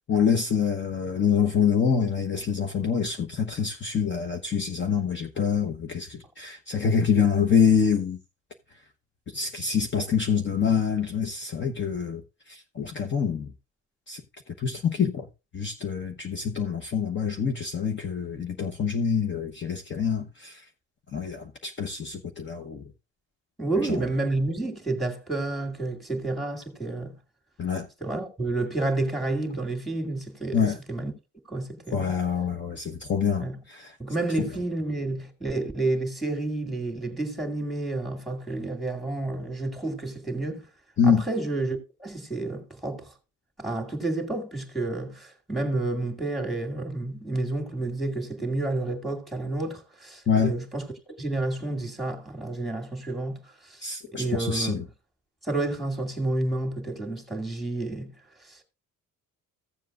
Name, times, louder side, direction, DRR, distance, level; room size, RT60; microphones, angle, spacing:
voice 1, 0.1-8.2 9.3-12.2 12.5-13.5 14.1-14.2 14.6-15.3 15.5-20.6 21.1-22.9 23.9-24.0 27.6-27.9 30.5-30.8 31.9-33.9 41.0-41.2 50.3-50.5 53.8-54.8, left 6 dB, 35° left, 1.0 m, -26 dB
voice 2, 23.6-27.1 28.0-31.1 31.5-32.1 33.4-33.6 34.0-40.6 41.0-43.1 43.6-53.8 54.1-54.8 55.4-58.1 58.4-58.6, right 2 dB, ahead, 2.2 m, -30 dB
15.5 x 7.5 x 2.4 m
cardioid pair, 150°, 33 cm